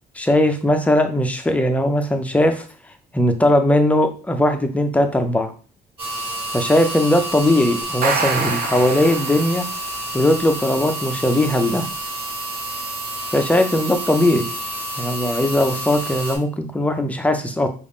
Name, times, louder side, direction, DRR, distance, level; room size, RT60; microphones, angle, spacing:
voice 1, 0.2-2.6 3.1-5.5 6.5-9.6 10.1-11.9 13.3-14.5 15.0-17.7, left 1 dB, 10° left, 6 dB, 0.4 m, -19 dB
sound 1, 6.0-16.4, right 1 dB, 35° right, 1.3 m, -29 dB
sound 2, 7.8-9.8, right 5 dB, 65° right, 0.7 m, -25 dB
5.0 x 2.4 x 3.5 m, 0.38 s
cardioid pair, 170°, 16 cm